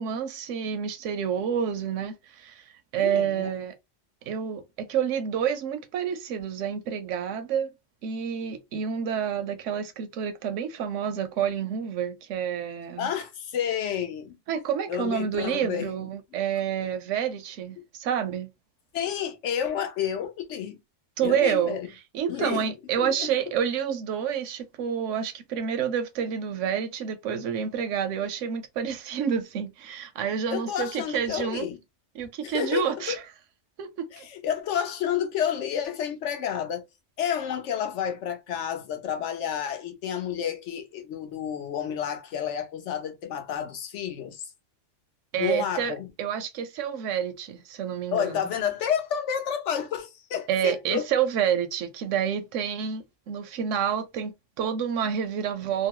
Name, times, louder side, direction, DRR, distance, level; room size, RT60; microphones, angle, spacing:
voice 1, 0.0-2.6 2.9-3.7 4.3-7.7 8.0-13.1 14.5-18.5 21.2-21.8 22.1-31.7 32.1-33.2 33.8-34.3 45.3-48.5 50.5-55.9, right 8 dB, 85° right, 1.0 m, -28 dB
voice 2, 3.0-3.5 13.0-14.4 14.9-15.9 17.8-17.9 18.9-20.8 21.2-21.9 22.3-22.7 23.0-23.4 30.5-31.8 32.4-33.2 34.1-36.9 37.2-44.5 45.4-46.1 48.1-51.1, left 9 dB, 75° left, 1.0 m, -30 dB
2.9 x 2.0 x 2.9 m
omnidirectional pair, 1.2 m